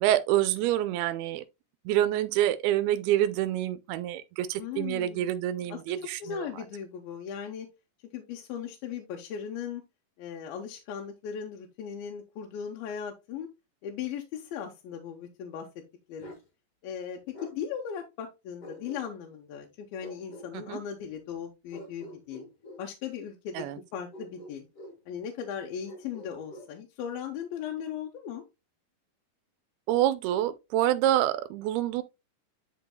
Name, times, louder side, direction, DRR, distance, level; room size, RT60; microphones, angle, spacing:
voice 1, 0.0-1.4 1.9-6.5 20.5-20.8 23.5-23.8 29.9-32.0, right 13 dB, 85° right, 2.5 m, -27 dB
voice 2, 4.6-5.3 5.7-5.8 6.2-7.7 8.1-9.8 10.2-13.5 13.8-15.7 16.1-16.3 16.8-22.5 22.8-23.7 23.9-24.7 25.1-28.4, left 8 dB, 80° left, 2.6 m, -38 dB
Bark, 16.2-16.5 17.3-17.6 18.6-19.3 20.0-20.5 21.7-22.8 24.1-25.0 25.8-26.7, equal, 50° left, 2.1 m, -46 dB
11.5 x 4.5 x 2.2 m
omnidirectional pair, 4.4 m